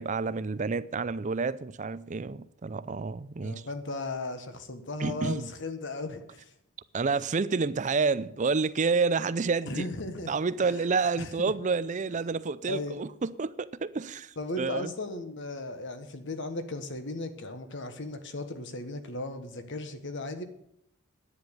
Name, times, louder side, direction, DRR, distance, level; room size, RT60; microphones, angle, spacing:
voice 1, 0.0-3.7 5.0-5.5 6.9-9.9 10.3-14.9, right 4 dB, 35° right, 0.5 m, -29 dB
voice 2, 3.4-6.5 9.7-10.3 10.6-10.7 11.2-11.5 12.1-12.2 12.7-13.0 14.4-20.4, left 2 dB, 55° left, 1.4 m, -36 dB
10.5 x 9.6 x 7.1 m
head